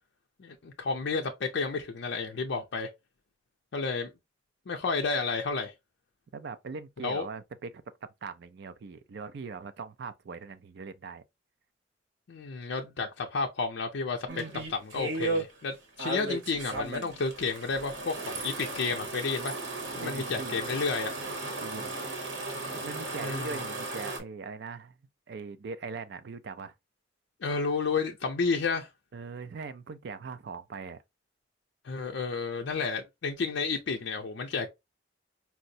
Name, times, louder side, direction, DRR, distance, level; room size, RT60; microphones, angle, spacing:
voice 1, 0.4-2.9 3.7-4.1 4.7-5.7 7.0-7.3 12.3-19.5 19.9-21.1 23.2-23.5 27.4-28.9 31.8-34.7, left 4 dB, 70° left, 0.5 m, -31 dB
voice 2, 6.3-11.2 20.0-20.6 21.6-22.0 22.7-25.0 25.3-26.7 29.1-31.0, right 4 dB, 60° right, 0.4 m, -41 dB
sound 1, 14.3-15.4 16.0-24.2, right 2 dB, 90° right, 0.9 m, -35 dB
4.4 x 2.0 x 2.6 m
head